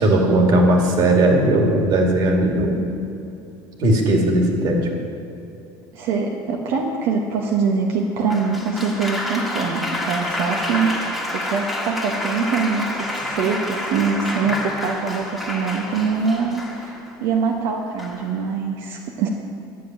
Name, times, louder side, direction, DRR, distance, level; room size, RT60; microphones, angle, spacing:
voice 1, 0.0-2.8 3.8-4.9, right 1 dB, 50° right, 1 dB, 2.2 m, -17 dB
voice 2, 5.9-19.3, right 5 dB, 75° right, 0 dB, 1.2 m, -23 dB
Applause, 8.3-17.2 18.0-18.4, left 1 dB, ahead, 1.7 m, -28 dB
11.5 x 6.9 x 9.1 m, 2.7 s
cardioid pair, 150°, 9 cm